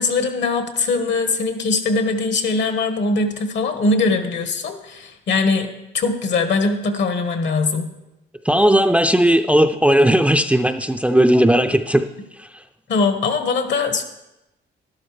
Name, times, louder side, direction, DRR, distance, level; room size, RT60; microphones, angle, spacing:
voice 1, 0.0-7.9 12.9-14.0, left 3 dB, 65° left, 7 dB, 1.4 m, -21 dB
voice 2, 8.5-12.0, right 1 dB, 5° right, 7 dB, 0.5 m, -16 dB
12.0 x 11.5 x 3.3 m, 0.93 s
cardioid pair, 90°, 20 cm